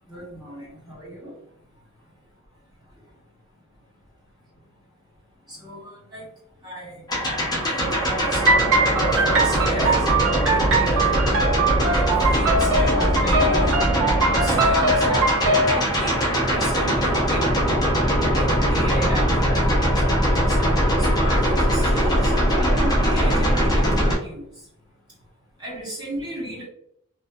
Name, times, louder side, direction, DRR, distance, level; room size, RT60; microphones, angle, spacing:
voice 1, 0.1-1.3 5.5-6.2 6.6-7.0 7.6-11.2 11.9-13.8 14.4-17.5 18.3-19.9 20.5-24.4 25.6-26.7, right 1 dB, 20° right, -7 dB, 0.9 m, -34 dB
sound 1, 7.1-24.2, equal, 20° left, 0.5 m, -21 dB
sound 2, 8.4-15.8, right 2 dB, 60° right, 0.5 m, -22 dB
2.6 x 2.3 x 2.2 m, 0.72 s
head